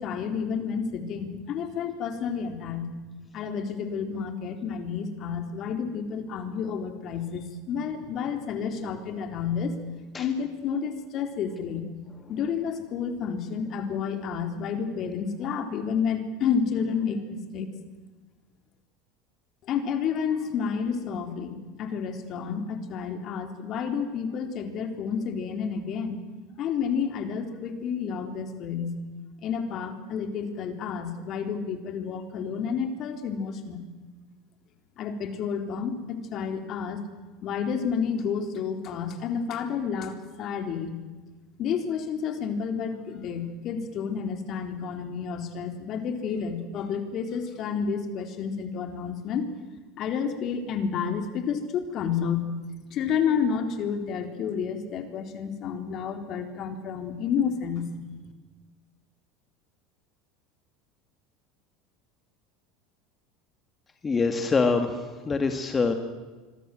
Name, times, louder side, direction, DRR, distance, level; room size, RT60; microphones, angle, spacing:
voice 1, 0.0-2.9 3.3-9.8 10.1-11.9 12.3-17.7 19.6-26.2 26.6-29.0 29.4-33.9 35.0-37.0 37.4-41.0 41.6-49.5 50.0-52.5 52.9-58.2, left 6 dB, 50° left, 7 dB, 3.8 m, -30 dB
voice 2, 64.0-65.0 65.2-65.9, left 4 dB, 25° left, 6 dB, 2.3 m, -24 dB
25.5 x 24.0 x 7.8 m, 1.3 s
hypercardioid pair, 90°, 0 cm